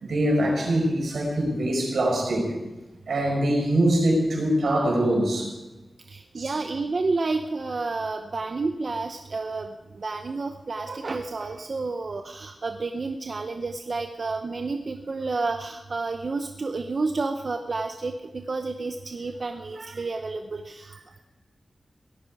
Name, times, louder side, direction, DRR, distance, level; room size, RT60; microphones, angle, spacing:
voice 1, 0.0-2.5 3.1-5.5 6.3-6.5, right 1 dB, 90° right, 0 dB, 5.0 m, -23 dB
voice 2, 6.1-9.7 10.0-21.0, right 3 dB, 50° right, 5 dB, 0.7 m, -30 dB
17.5 x 13.0 x 4.8 m, 1.1 s
wide cardioid pair, 120°, 0 cm